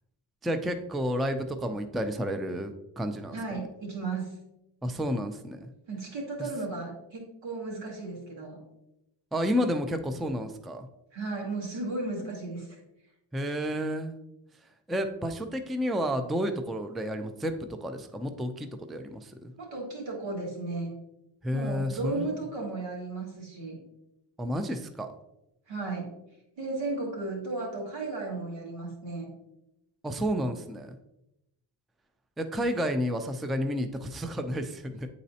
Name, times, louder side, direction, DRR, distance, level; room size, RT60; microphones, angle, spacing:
voice 1, 0.4-3.6 4.8-5.7 6.4-6.5 9.3-10.9 13.3-14.1 14.5-19.5 21.4-22.4 24.4-25.1 30.0-31.0 32.4-35.1, equal, ahead, 7 dB, 0.3 m, -31 dB
voice 2, 3.3-4.3 5.9-8.6 11.1-12.8 19.6-20.9 21.5-23.8 25.7-26.1 26.6-29.3, right 3 dB, 90° right, -2 dB, 2.2 m, -35 dB
9.4 x 4.1 x 2.7 m, 0.87 s
wide cardioid pair, 115°, 45 cm